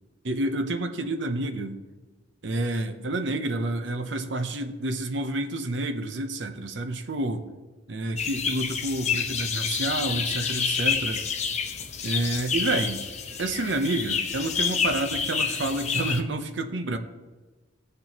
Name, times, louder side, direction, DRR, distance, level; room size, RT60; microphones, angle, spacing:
voice 1, 0.2-1.8 2.4-7.5 7.9-11.2 12.0-13.0 13.4-17.0, right 2 dB, 70° right, 7 dB, 0.8 m, -29 dB
sound 1, 8.2-16.2, left 6 dB, 35° left, 0.8 m, -28 dB
16.5 x 6.7 x 2.9 m, 1.3 s
head